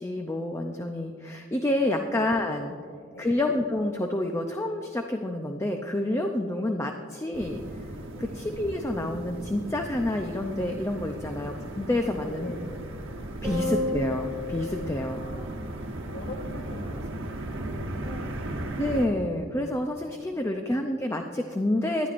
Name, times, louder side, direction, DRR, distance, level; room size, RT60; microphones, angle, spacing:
voice 1, 0.0-2.7 3.2-7.6 8.2-12.5 13.4-15.2 18.8-22.1, left 1 dB, 15° left, 4 dB, 0.5 m, -28 dB
voice 2, 1.9-2.4 2.8-3.4 6.5-6.6 8.1-8.4 11.2-11.4 12.0-12.7 13.4-13.6 14.9-18.5 20.3-20.6, left 2 dB, 55° left, 3 dB, 2.0 m, -45 dB
sound 1, 7.3-19.1, right 1 dB, 65° right, 1.1 m, -37 dB
sound 2, 11.3-18.5, equal, 70° left, 3.0 m, -52 dB
sound 3, 13.4-16.0, left 2 dB, 5° right, 2.6 m, -33 dB
19.0 x 11.5 x 2.5 m, 2.2 s
head